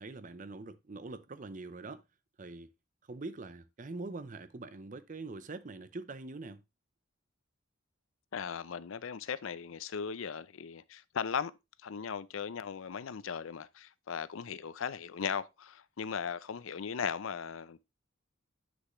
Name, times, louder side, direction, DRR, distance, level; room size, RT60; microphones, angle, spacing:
voice 1, 0.0-2.0 2.4-2.7 3.1-6.6, right 3 dB, 40° right, 0.6 m, -43 dB
voice 2, 8.3-11.5 11.8-17.8, left 6 dB, 90° left, 0.5 m, -38 dB
7.8 x 6.5 x 3.0 m
head